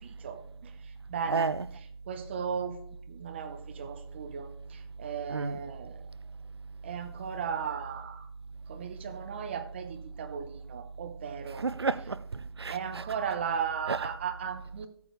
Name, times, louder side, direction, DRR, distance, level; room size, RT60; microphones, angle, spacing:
voice 1, 0.0-1.5 2.1-2.8 3.1-6.0 6.8-8.3 8.7-11.7 12.7-14.9, right 7 dB, 25° right, 0.9 m, -36 dB
voice 2, 1.3-1.7 5.3-5.6 11.6-13.0 13.9-14.0, right 4 dB, 70° right, 0.5 m, -31 dB
13.5 x 8.3 x 3.2 m
figure-of-eight pair, 155°, 14 cm